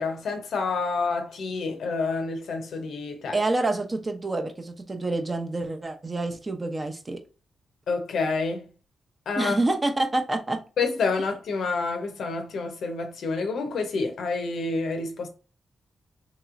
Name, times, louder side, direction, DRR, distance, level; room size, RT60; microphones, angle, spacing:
voice 1, 0.0-3.4 7.9-8.6 9.3-9.6 10.8-15.3, left 4 dB, 80° left, 0.6 m, -28 dB
voice 2, 3.3-7.2 9.4-10.6, right 2 dB, 30° right, 0.6 m, -27 dB
3.0 x 2.9 x 2.4 m
cardioid pair, 60°, 0 cm